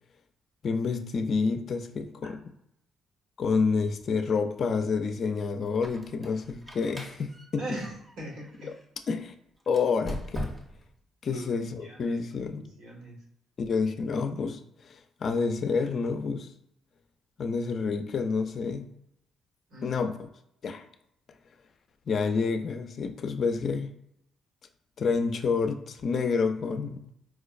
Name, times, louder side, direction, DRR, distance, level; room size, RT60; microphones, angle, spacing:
voice 1, 0.6-2.5 3.4-7.6 9.1-9.3 9.7-10.5 11.2-12.7 13.6-16.5 17.4-18.9 19.8-20.3 20.6-20.8 22.1-23.9 25.0-27.1, left 5 dB, 55° left, 8 dB, 0.4 m, -29 dB
Squeak, 5.7-8.8 9.6-10.9, equal, 20° right, 0.7 m, -41 dB
voice 2, 7.6-8.7 11.3-13.2 19.7-20.0, right 1 dB, 80° right, -3 dB, 1.5 m, -41 dB
4.6 x 2.0 x 2.4 m, 0.76 s
cardioid pair, 90°, 0 cm